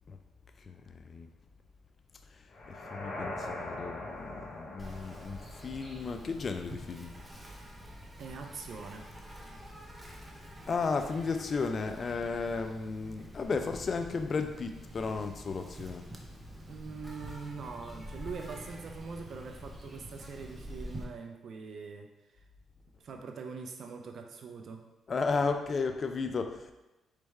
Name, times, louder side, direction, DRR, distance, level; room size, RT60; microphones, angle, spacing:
sound 1, 2.5-6.6, left 1 dB, 60° left, 0.9 m, -42 dB
voice 1, 2.7-7.1 10.7-16.0 25.1-26.7, left 4 dB, 40° left, 6 dB, 0.3 m, -34 dB
Insect, 4.8-21.0, equal, 15° right, 0.7 m, -47 dB
voice 2, 8.2-9.1 16.7-22.4 23.0-24.9, right 5 dB, 60° right, 4 dB, 0.4 m, -43 dB
4.4 x 3.3 x 3.2 m, 1.0 s
cardioid pair, 90°, 0 cm